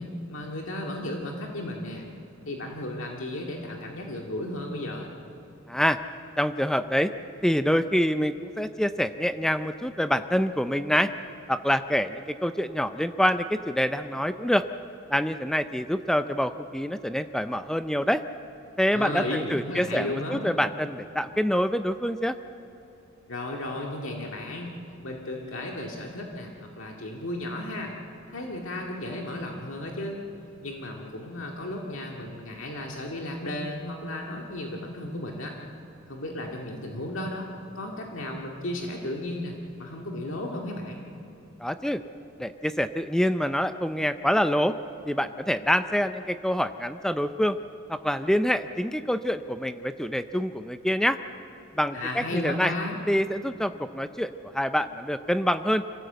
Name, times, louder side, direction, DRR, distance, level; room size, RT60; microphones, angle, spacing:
voice 1, 0.0-2.0 2.5-5.1 18.9-20.5 23.3-24.7 25.0-27.9 28.3-30.2 30.6-35.5 36.1-37.5 37.7-41.1 51.9-53.0, left 1 dB, 65° left, 0 dB, 2.1 m, -34 dB
voice 2, 5.7-6.0 6.4-7.1 7.4-11.1 11.5-14.6 15.1-18.2 18.8-22.4 41.6-42.0 42.4-44.7 45.1-47.6 47.9-51.2 51.8-52.7 53.1-55.8, equal, 5° left, 10 dB, 0.5 m, -26 dB
26.0 x 17.5 x 8.0 m, 3.0 s
head